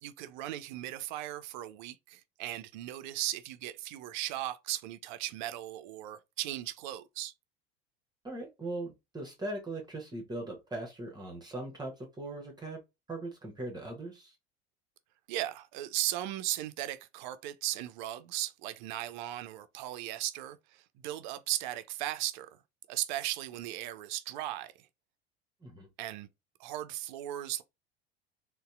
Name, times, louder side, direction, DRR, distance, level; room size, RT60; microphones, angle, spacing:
voice 1, 0.0-7.3 15.3-20.6 21.0-22.5 22.9-24.7 26.0-26.3 26.6-27.6, right 14 dB, 50° right, 0.4 m, -37 dB
voice 2, 8.2-12.8 13.1-14.4 25.6-25.9, right 2 dB, 15° right, 0.9 m, -40 dB
4.0 x 2.1 x 2.3 m
figure-of-eight pair, 75°, 31 cm